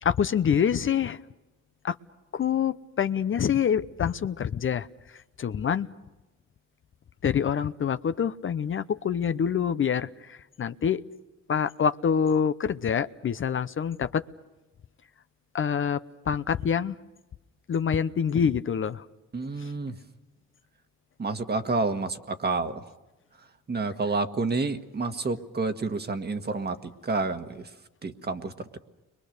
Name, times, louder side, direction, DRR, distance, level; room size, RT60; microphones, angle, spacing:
voice 1, 0.0-1.2 1.8-2.0 2.3-4.9 5.4-5.9 7.2-11.0 11.5-14.2 15.5-16.0 16.3-17.0 17.7-19.0 19.6-19.7, left 7 dB, 45° left, 11 dB, 0.8 m, -26 dB
voice 2, 19.3-20.0 21.2-22.9 23.7-27.7 28.0-28.7, right 3 dB, 35° right, 7 dB, 1.7 m, -29 dB
30.0 x 23.5 x 6.7 m, 1.0 s
cardioid pair, 90°, 30 cm